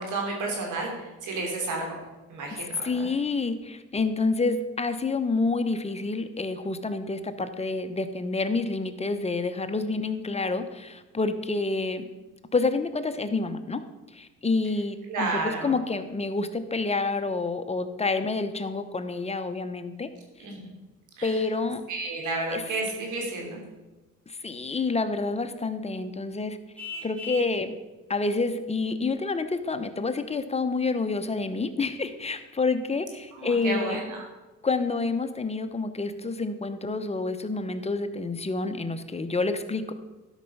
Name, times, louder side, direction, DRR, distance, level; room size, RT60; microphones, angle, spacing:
voice 1, 0.0-2.0 2.3-2.9 15.1-15.7 20.4-20.6 21.2-21.4 21.9-23.6 33.3-34.2, right 3 dB, 80° right, 0 dB, 3.1 m, -31 dB
voice 2, 2.5-12.1 12.5-13.8 14.1-20.1 21.2-21.8 22.5-22.6 24.3-26.6 27.0-27.7 28.1-34.0 34.6-39.9, left 3 dB, 20° left, 9 dB, 0.9 m, -28 dB
Vehicle horn car horn honking, 26.8-27.6, left 3 dB, 5° left, 2.6 m, -38 dB
12.0 x 5.7 x 5.5 m, 1.1 s
cardioid pair, 90°, 30 cm